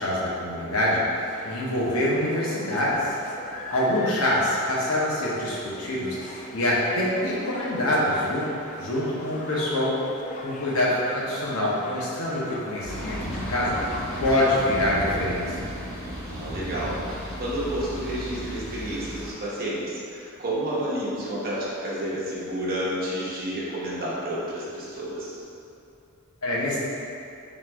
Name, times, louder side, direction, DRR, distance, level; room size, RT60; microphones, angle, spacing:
voice 1, 0.0-3.2 3.7-8.5 8.8-10.0 10.4-13.8 14.2-15.7 26.4-26.8, left 1 dB, 85° left, -5 dB, 0.9 m, -25 dB
sound 1, 1.3-15.0, left 2 dB, 35° left, 0.3 m, -41 dB
voice 2, 9.0-9.4 16.0-25.4, right 1 dB, 45° right, -7 dB, 0.9 m, -31 dB
sound 2, 12.8-19.3, equal, 5° left, 1.3 m, -34 dB
3.8 x 2.5 x 4.5 m, 2.7 s
head